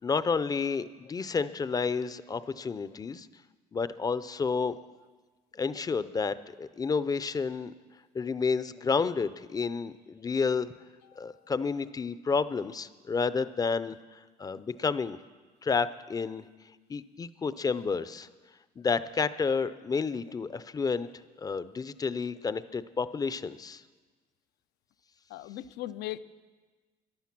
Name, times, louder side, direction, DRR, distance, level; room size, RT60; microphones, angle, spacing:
voice 1, 0.0-3.3 3.7-4.8 5.5-7.7 8.1-10.7 11.2-15.2 15.6-16.4 16.9-18.3 18.8-21.1 21.4-23.8, left 5 dB, 20° left, 15 dB, 0.5 m, -30 dB
voice 2, 11.0-11.5 25.3-26.2, left 15 dB, 80° left, 14 dB, 0.5 m, -39 dB
14.5 x 11.0 x 6.0 m, 1.4 s
cardioid pair, 110°, 17 cm